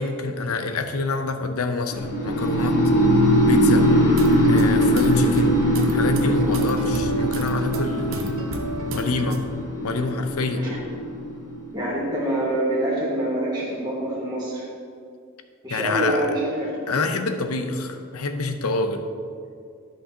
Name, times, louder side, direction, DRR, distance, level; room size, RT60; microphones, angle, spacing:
voice 1, 0.0-2.8 3.4-3.9 4.5-5.6 5.9-8.3 8.9-9.4 9.8-10.6 15.7-16.3 16.9-19.1, left 3 dB, 90° left, 7 dB, 0.7 m, -26 dB
sound 1, 1.9-11.9, equal, 50° left, 1.3 m, -21 dB
sound 2, 3.9-9.5, right 2 dB, 65° right, 0.7 m, -33 dB
voice 2, 11.7-14.7 15.6-16.7, right 1 dB, 20° right, -7 dB, 1.5 m, -25 dB
12.5 x 5.4 x 2.8 m, 2.4 s
head